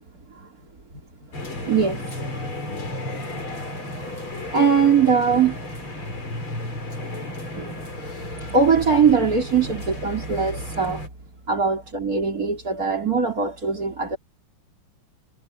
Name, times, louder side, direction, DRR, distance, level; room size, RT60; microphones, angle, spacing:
sound 1, 1.3-11.1, left 1 dB, 70° left, 7.0 m, -33 dB
voice 1, 1.5-2.1 2.6-3.0 4.5-5.6 6.1-6.2 7.5-8.3 8.5-11.0 11.5-14.2, right 6 dB, 40° right, 4.2 m, -21 dB
omnidirectional pair, 2.4 m